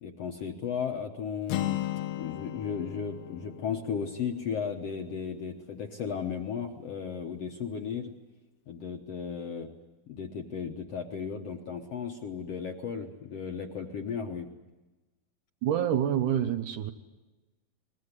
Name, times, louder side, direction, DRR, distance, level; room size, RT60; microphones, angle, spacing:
voice 1, 0.0-1.8 2.2-8.1 8.7-9.7 10.1-14.5, left 6 dB, 60° left, 3 dB, 1.7 m, -35 dB
Acoustic guitar, 1.5-5.4, left 13 dB, 80° left, 2.8 m, -36 dB
voice 2, 15.6-16.9, right 10 dB, 70° right, 7 dB, 2.3 m, -27 dB
24.5 x 21.0 x 9.8 m, 1.2 s
omnidirectional pair, 4.3 m